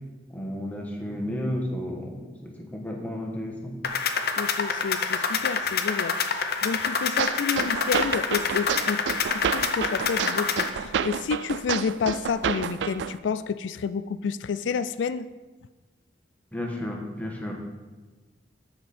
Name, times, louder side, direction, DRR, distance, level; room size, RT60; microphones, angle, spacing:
voice 1, 0.3-3.7 16.5-17.5, left 1 dB, 10° left, -1 dB, 1.4 m, -32 dB
sound 1, 3.8-10.7, left 5 dB, 55° left, 0.7 m, -27 dB
voice 2, 4.4-9.0 9.3-15.3, left 6 dB, 80° left, 14 dB, 0.4 m, -30 dB
sound 2, 7.2-13.2, right 7 dB, 70° right, 0.3 m, -30 dB
13.0 x 5.2 x 4.3 m, 1.3 s
head